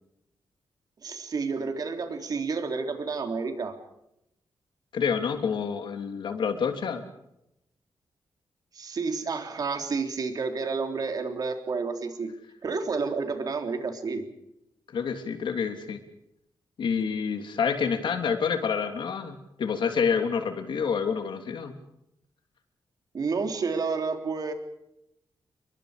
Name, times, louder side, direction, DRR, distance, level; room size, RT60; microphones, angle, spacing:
voice 1, 1.0-3.8 8.7-12.3 12.6-14.3 23.1-24.5, right 4 dB, 50° right, 5 dB, 3.5 m, -30 dB
voice 2, 4.9-7.0 14.9-16.0 16.8-21.7, left 6 dB, 70° left, 6 dB, 3.2 m, -28 dB
30.0 x 23.0 x 5.1 m, 0.81 s
wide cardioid pair, 160°, 8 cm